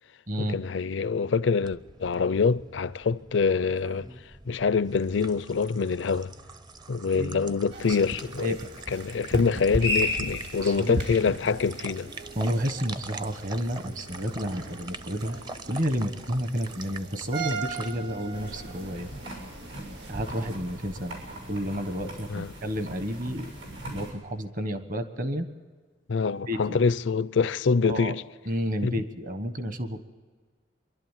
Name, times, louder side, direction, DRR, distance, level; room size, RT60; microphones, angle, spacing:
voice 1, 0.4-4.1 4.5-6.3 6.9-8.5 8.9-12.1 22.3-22.5 26.1-28.2 28.8-28.9, left 5 dB, 75° left, 0.5 m, -25 dB
sound 1, 1.6-19.3, right 3 dB, 25° right, 0.6 m, -45 dB
voice 2, 7.1-7.5 7.9-8.0 8.4-8.7 10.6-11.0 12.3-15.4 15.7-19.1 20.1-21.2 21.5-23.5 23.9-25.5 26.5-26.6 27.8-28.2 28.5-30.0, equal, 45° right, 1.4 m, -31 dB
sound 2, 7.7-20.6, equal, 65° right, 2.5 m, -36 dB
sound 3, 18.3-24.1, right 1 dB, 85° right, 7.0 m, -41 dB
25.5 x 12.0 x 9.1 m
head